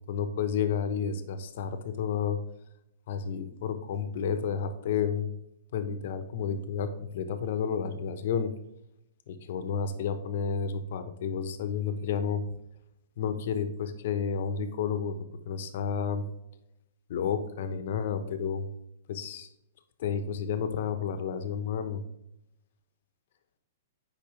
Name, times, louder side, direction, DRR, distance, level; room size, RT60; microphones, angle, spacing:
voice 1, 0.1-2.4 3.1-5.3 5.7-8.5 9.3-12.4 13.2-15.2 15.4-16.3 17.1-18.7 19.1-19.5 20.0-22.0, left 7 dB, 60° left, 9 dB, 1.0 m, -31 dB
8.8 x 5.4 x 3.3 m, 0.83 s
hypercardioid pair, 155°, 0 cm